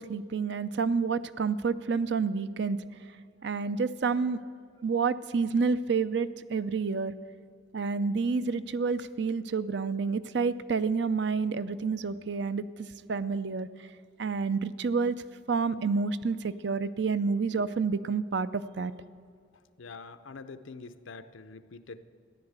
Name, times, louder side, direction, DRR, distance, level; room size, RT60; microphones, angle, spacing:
voice 1, 0.0-2.8 3.4-4.4 4.8-7.1 7.7-12.7 13.1-13.7 14.2-15.2 15.5-18.9, right 5 dB, 55° right, 14 dB, 0.5 m, -29 dB
voice 2, 19.8-22.0, left 4 dB, 75° left, 12 dB, 0.7 m, -45 dB
14.5 x 10.5 x 8.0 m, 2.3 s
head